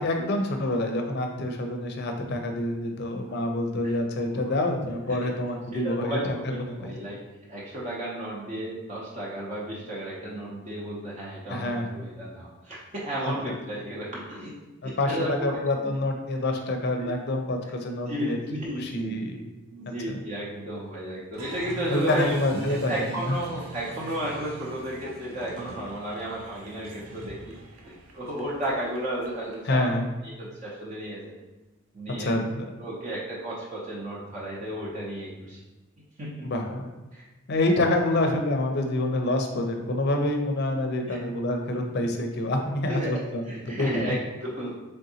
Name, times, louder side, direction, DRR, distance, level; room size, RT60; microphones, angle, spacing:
voice 1, 0.0-6.9 11.5-12.0 13.4-13.6 14.8-18.4 18.8-19.5 20.1-20.2 21.9-23.4 29.7-30.1 32.2-32.6 36.4-36.9 37.5-44.2, left 1 dB, 55° left, 4 dB, 0.5 m, -27 dB
voice 2, 5.7-7.2 7.5-14.5 14.8-15.9 17.0-17.1 18.1-19.2 19.7-22.3 22.9-27.4 27.8-29.9 30.2-31.3 31.9-32.3 32.8-35.6 36.2-36.5 37.1-37.2 41.1-41.2 42.9-44.8, right 1 dB, 35° right, -5 dB, 0.6 m, -33 dB
Applause, 21.3-29.7, right 2 dB, 80° right, 0.5 m, -42 dB
3.8 x 3.4 x 2.7 m, 1.1 s
head